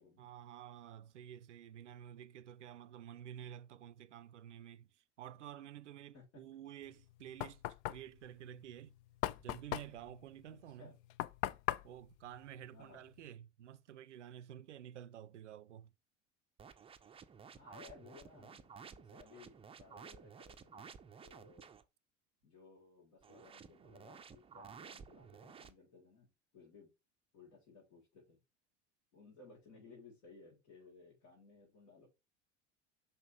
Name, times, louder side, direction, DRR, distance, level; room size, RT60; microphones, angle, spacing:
voice 1, 0.2-8.9 9.4-11.0 11.8-15.9, right 10 dB, 70° right, 0.6 m, -51 dB
Knock, 6.9-13.3, left 15 dB, 40° left, 0.4 m, -41 dB
voice 2, 10.5-11.0 12.7-13.0 17.5-20.9 21.2-21.7 22.4-26.9 27.3-28.4 29.1-32.1, left 4 dB, 55° left, 3.8 m, -60 dB
sound 1, 16.6-21.8 23.2-25.7, right 6 dB, 15° right, 0.6 m, -54 dB
5.6 x 5.5 x 3.2 m
figure-of-eight pair, 75°, 37 cm